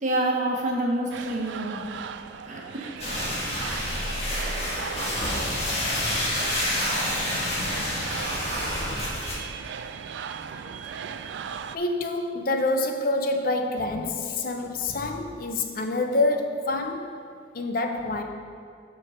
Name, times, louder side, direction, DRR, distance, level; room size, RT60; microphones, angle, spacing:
voice 1, 0.0-1.8 2.4-2.9, right 1 dB, 40° right, -2 dB, 1.3 m, -27 dB
sound 1, 1.1-11.8, right 7 dB, 70° right, 0.3 m, -37 dB
sound 2, 3.0-9.3, left 1 dB, 35° left, 1.5 m, -28 dB
voice 2, 11.7-17.2 17.5-18.2, left 2 dB, 50° left, 4 dB, 0.6 m, -27 dB
7.7 x 4.6 x 6.3 m, 2.3 s
head